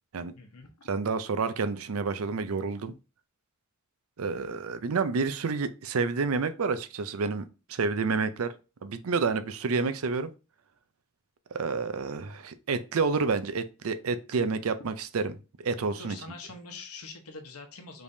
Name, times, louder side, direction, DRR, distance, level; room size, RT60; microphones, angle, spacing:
voice 1, 0.3-0.9 16.0-18.0, left 3 dB, 85° left, 1.0 m, -44 dB
voice 2, 0.9-2.9 4.2-8.5 8.8-10.3 11.5-16.2, right 4 dB, 70° right, 0.5 m, -29 dB
5.1 x 3.4 x 2.7 m
head